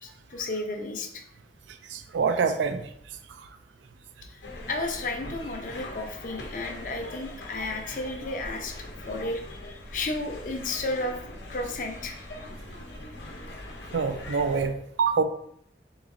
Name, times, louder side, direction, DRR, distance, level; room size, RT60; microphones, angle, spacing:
voice 1, 0.0-1.2 4.2-11.2 11.5-12.3, left 2 dB, 45° left, 4 dB, 0.6 m, -33 dB
voice 2, 1.9-2.9 13.9-14.7 15.0-15.2, right 5 dB, 85° right, 7 dB, 0.4 m, -25 dB
sound 1, 4.4-14.7, left 1 dB, 85° left, 0.8 m, -41 dB
3.9 x 3.1 x 3.7 m, 0.68 s
head